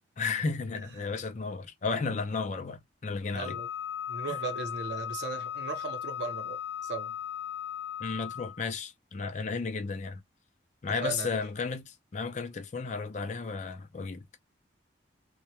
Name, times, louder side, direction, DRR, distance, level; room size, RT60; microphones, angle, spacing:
voice 1, 0.2-3.6 8.0-10.2 10.8-14.2, left 4 dB, 40° left, 0.4 m, -33 dB
voice 2, 0.7-1.2 3.3-3.7 4.1-7.2 11.0-11.4, right 4 dB, 65° right, 0.7 m, -37 dB
Wind instrument woodwind instrument, 3.4-8.6, left 10 dB, 70° left, 0.8 m, -37 dB
2.2 x 2.1 x 2.7 m
head